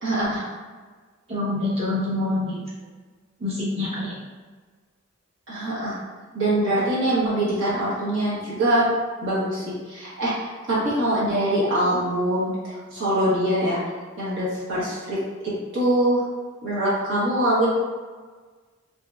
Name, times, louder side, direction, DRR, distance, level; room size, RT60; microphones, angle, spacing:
voice 1, 0.0-0.4 5.5-6.0 6.3-8.9 9.2-12.5 12.9-13.8 14.2-15.2 15.7-16.2 16.6-17.7, right 1 dB, 60° right, -9 dB, 1.1 m, -23 dB
voice 2, 1.3-2.6 3.4-4.1, left 2 dB, 30° right, -8 dB, 0.9 m, -26 dB
3.6 x 2.7 x 2.3 m, 1.4 s
head